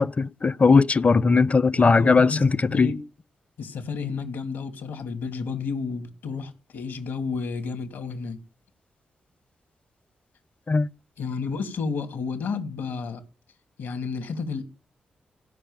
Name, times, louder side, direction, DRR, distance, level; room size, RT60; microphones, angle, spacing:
voice 1, 0.0-2.9 10.7-10.9, left 4 dB, 40° left, 0.7 m, -19 dB
voice 2, 1.7-3.0 3.6-8.4 11.2-13.2 13.8-14.6, left 5 dB, 75° left, 3.1 m, -31 dB
17.0 x 5.7 x 9.0 m
supercardioid pair, 45°, 3 cm